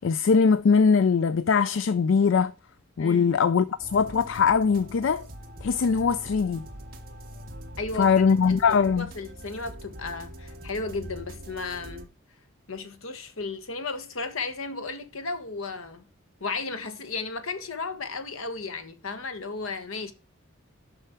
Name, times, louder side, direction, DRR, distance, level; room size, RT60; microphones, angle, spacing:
voice 1, 0.0-2.5 3.0-5.3 5.6-6.7 8.0-9.1, left 5 dB, 65° left, 0.4 m, -21 dB
voice 2, 3.0-3.3 7.8-12.1 12.7-16.0 16.4-20.1, left 3 dB, 80° left, 1.2 m, -34 dB
sound 1, 3.8-12.1, equal, 45° right, 1.3 m, -43 dB
6.9 x 5.8 x 4.4 m
head